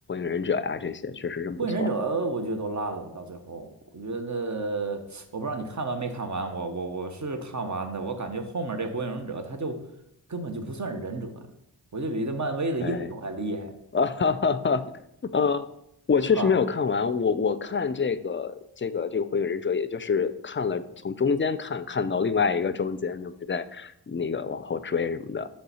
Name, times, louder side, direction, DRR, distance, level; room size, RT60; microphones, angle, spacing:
voice 1, 0.1-1.9 12.8-13.1 13.9-14.9 15.3-15.7 16.1-25.5, left 5 dB, 30° left, 13 dB, 0.4 m, -26 dB
voice 2, 1.6-9.8 10.3-11.3 11.9-13.7 16.3-16.5, right 3 dB, 45° right, 6 dB, 0.9 m, -31 dB
5.5 x 3.4 x 5.5 m, 0.78 s
cardioid pair, 50°, 40 cm